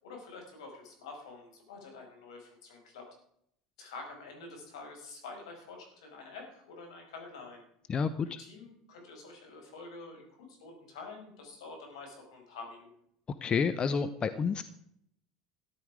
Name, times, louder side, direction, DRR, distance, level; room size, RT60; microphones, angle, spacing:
voice 1, 0.0-3.0 3.8-7.6 8.2-12.9, left 3 dB, 80° left, 2 dB, 5.5 m, -47 dB
voice 2, 7.9-8.4 13.4-14.6, left 6 dB, 30° left, 13 dB, 0.8 m, -29 dB
14.0 x 11.5 x 4.9 m, 0.69 s
hypercardioid pair, 90°, 3 cm